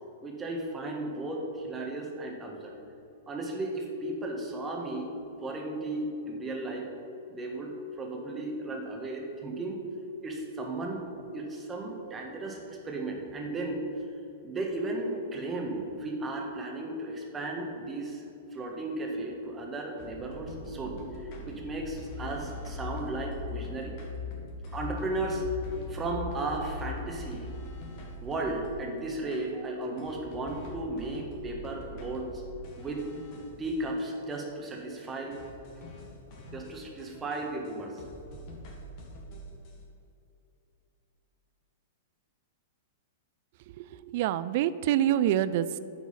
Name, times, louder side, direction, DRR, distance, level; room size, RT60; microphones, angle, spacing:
voice 1, 0.2-2.7 3.3-5.1 5.4-6.9 7.3-9.8 10.2-11.1 11.3-12.6 12.8-13.9 14.4-18.2 18.5-23.9 24.7-25.4 25.9-27.5 28.2-32.4 32.8-33.0 33.6-35.4 36.5-38.0, right 2 dB, 20° right, 1 dB, 1.5 m, -35 dB
sound 1, 20.0-28.9 29.3-29.4 30.0-34.4 34.6-34.7 35.0-35.1 35.3-37.7 38.0-39.7, left 2 dB, 45° left, 2.0 m, -41 dB
voice 2, 43.8-45.8, right 11 dB, 55° right, 15 dB, 0.3 m, -26 dB
9.4 x 4.6 x 5.8 m, 2.8 s
hypercardioid pair, 105°, 0 cm